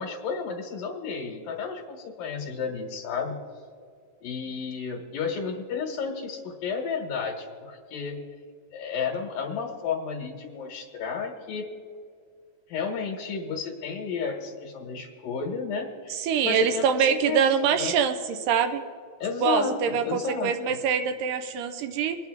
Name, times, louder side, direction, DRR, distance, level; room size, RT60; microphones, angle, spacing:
voice 1, 0.0-3.4 4.2-8.2 8.7-11.7 12.7-17.9 19.2-20.8, left 5 dB, 70° left, 2 dB, 2.7 m, -32 dB
voice 2, 16.1-18.8 19.4-22.2, right 7 dB, 80° right, 8 dB, 2.0 m, -24 dB
23.0 x 9.6 x 3.5 m, 2.2 s
omnidirectional pair, 4.3 m